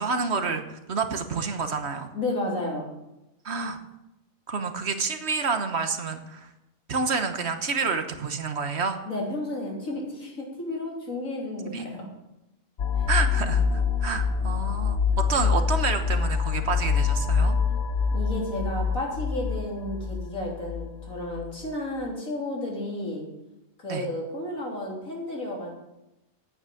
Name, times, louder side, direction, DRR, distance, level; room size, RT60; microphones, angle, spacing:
voice 1, 0.0-2.1 3.4-3.8 4.5-6.5 6.9-9.0 11.6-11.9 13.1-17.6 23.9-24.1, right 4 dB, 55° right, 8 dB, 1.3 m, -29 dB
voice 2, 2.1-2.9 9.1-12.1 13.0-13.1 18.1-23.2 23.8-25.7, left 1 dB, 85° left, -1 dB, 3.7 m, -32 dB
sound 1, 12.8-21.4, left 5 dB, 60° left, 1.1 m, -25 dB
9.5 x 9.2 x 8.5 m, 0.94 s
omnidirectional pair, 1.4 m